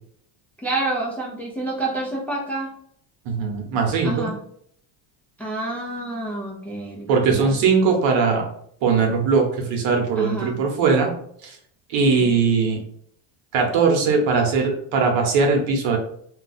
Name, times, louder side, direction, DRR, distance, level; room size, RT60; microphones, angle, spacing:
voice 1, 0.6-2.7 4.0-4.4 5.4-7.6 10.2-10.6 12.1-12.3, right 2 dB, 5° left, -4 dB, 0.5 m, -28 dB
voice 2, 3.2-4.3 7.1-8.5 8.8-11.1 11.4-11.6 11.9-12.8 13.5-16.0, right 4 dB, 70° right, 2 dB, 1.0 m, -20 dB
2.3 x 2.3 x 3.9 m, 0.66 s
cardioid pair, 140°, 47 cm